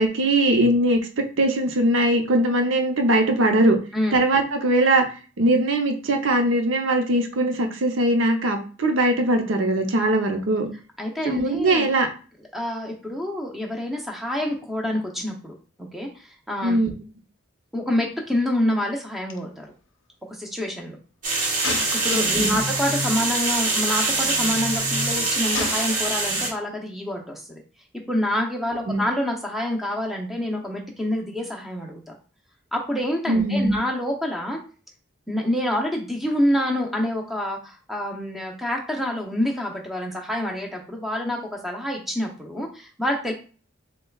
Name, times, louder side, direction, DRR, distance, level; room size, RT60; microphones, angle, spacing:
voice 1, 0.0-3.8 4.1-5.0 5.4-10.7 11.2-12.1 16.6-16.9 22.1-22.6 28.9-29.0 33.3-33.8, right 1 dB, 75° right, 3 dB, 0.7 m, -21 dB
voice 2, 11.0-11.9 12.5-15.5 15.9-16.8 17.7-19.7 20.3-21.0 22.0-27.6 28.1-32.1 32.7-34.6 35.3-43.3, left 1 dB, ahead, 0 dB, 0.6 m, -27 dB
Gunshot gunfire, 19.3-19.4 19.6-19.8 21.6-22.6 23.4-23.6 25.5-26.5, left 4 dB, 70° left, 0.6 m, -33 dB
sound 1, 21.2-26.5, right 2 dB, 40° right, 1.4 m, -24 dB
6.6 x 2.3 x 2.3 m, 0.38 s
head